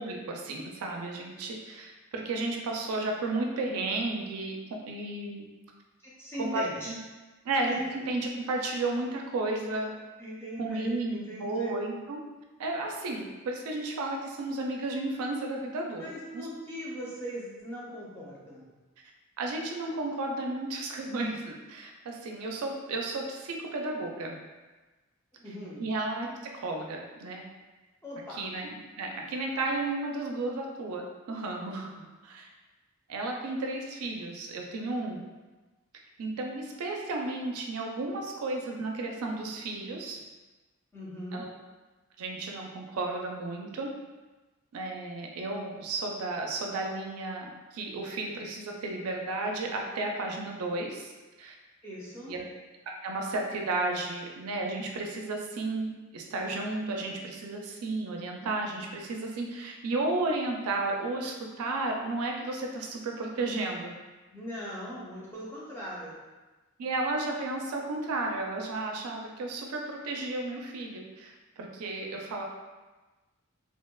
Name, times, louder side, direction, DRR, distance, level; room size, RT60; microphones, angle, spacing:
voice 1, 0.0-5.5 6.4-7.0 7.4-9.9 10.6-12.2 12.6-16.1 16.3-16.5 19.4-24.4 25.8-26.3 26.5-27.4 28.3-32.5 33.1-35.2 36.2-40.2 41.3-41.5 42.2-43.9 44.7-47.5 47.7-51.1 51.4-51.5 52.3-52.4 53.0-63.9 66.8-72.4, right 2 dB, 85° right, 1 dB, 0.4 m, -33 dB
voice 2, 6.0-6.9 7.7-7.8 10.2-11.8 16.0-18.7 25.4-25.8 28.0-28.4 40.9-41.4 51.8-52.3 64.3-66.2, equal, 10° left, -6 dB, 0.4 m, -39 dB
2.7 x 2.1 x 2.2 m, 1.2 s
head